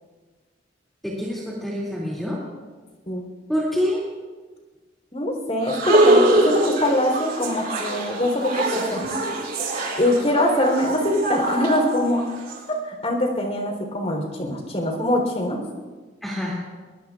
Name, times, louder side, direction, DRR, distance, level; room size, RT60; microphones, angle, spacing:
voice 1, 1.0-2.4 3.5-4.0 16.2-16.6, equal, ahead, -6 dB, 2.6 m, -26 dB
voice 2, 5.1-9.0 10.0-12.2 12.8-15.6, left 1 dB, 35° left, 2 dB, 3.8 m, -23 dB
sound 1, 5.6-12.6, right 1 dB, 55° right, 4.4 m, -23 dB
23.0 x 19.5 x 2.5 m, 1.4 s
head